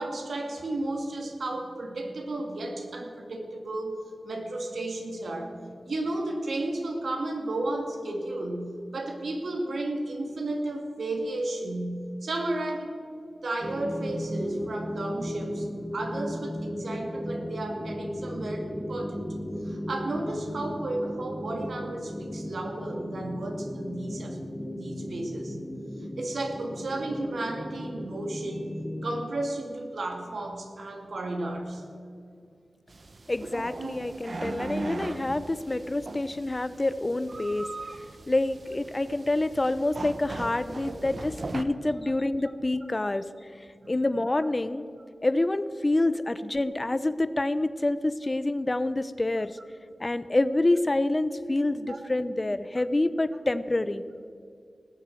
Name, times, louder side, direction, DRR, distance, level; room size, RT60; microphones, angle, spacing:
voice 1, 0.0-12.9 13.4-15.7 15.9-19.3 19.6-25.6 26.2-28.7 29.0-31.8 40.8-40.9 42.7-43.1 43.8-43.9 51.9-52.0, right 2 dB, 80° right, 3 dB, 2.2 m, -33 dB
sound 1, 13.6-29.2, equal, 15° left, 1.2 m, -36 dB
sound 2, 32.9-41.6, right 3 dB, 55° right, 0.9 m, -39 dB
voice 2, 33.3-37.7 38.3-43.3 43.9-44.9 45.2-49.5 50.0-54.0, left 2 dB, 30° left, 14 dB, 0.6 m, -27 dB
19.0 x 7.4 x 7.6 m, 2.3 s
wide cardioid pair, 65°, 0 cm